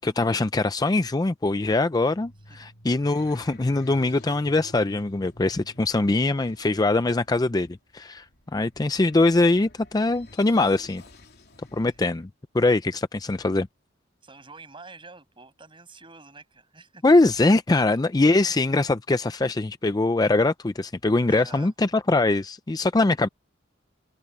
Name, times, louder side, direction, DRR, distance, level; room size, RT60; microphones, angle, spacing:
voice 1, 0.0-8.2 8.5-11.0 11.7-12.3 12.5-13.7 17.0-23.3, left 2 dB, 20° left, 0.4 m, -22 dB
sound 1, 1.8-12.3, left 1 dB, 55° left, 3.6 m, -50 dB
voice 2, 14.2-17.2 17.7-18.0 21.3-21.7, right 3 dB, 25° right, 7.0 m, -47 dB
head